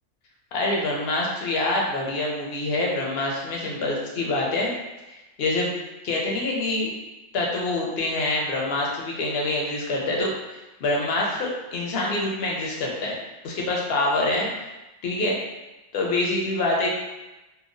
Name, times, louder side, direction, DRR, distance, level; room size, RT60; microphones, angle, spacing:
voice 1, 0.5-4.7 5.1-5.7 6.0-6.9 7.3-10.3 10.8-13.2 13.4-14.5 15.0-15.4 15.9-16.9, left 2 dB, 60° left, -2 dB, 0.7 m, -25 dB
2.9 x 2.2 x 2.5 m, 1.0 s
omnidirectional pair, 1.5 m